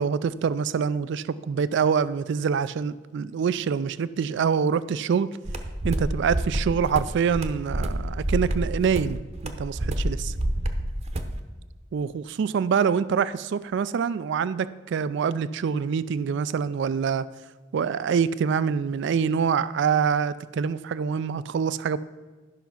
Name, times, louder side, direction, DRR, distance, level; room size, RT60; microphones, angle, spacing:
voice 1, 0.0-5.3 5.8-9.2 9.4-10.3 11.9-17.2 17.7-22.0, right 6 dB, 65° right, 16 dB, 0.3 m, -25 dB
sound 1, 5.4-11.4, right 1 dB, 35° right, 0.8 m, -28 dB
11.5 x 5.7 x 5.7 m, 1.3 s
head